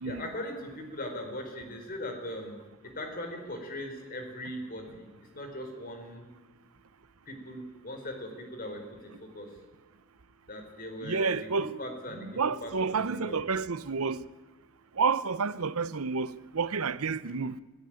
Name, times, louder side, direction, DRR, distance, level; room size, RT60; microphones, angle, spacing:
voice 1, 0.0-2.5 2.8-6.2 7.3-9.5 10.5-13.5, left 1 dB, 40° left, 4.6 m, -40 dB
voice 2, 11.0-11.7 12.2-14.2 15.0-17.6, right 5 dB, 75° right, 0.8 m, -30 dB
25.0 x 16.5 x 9.0 m
head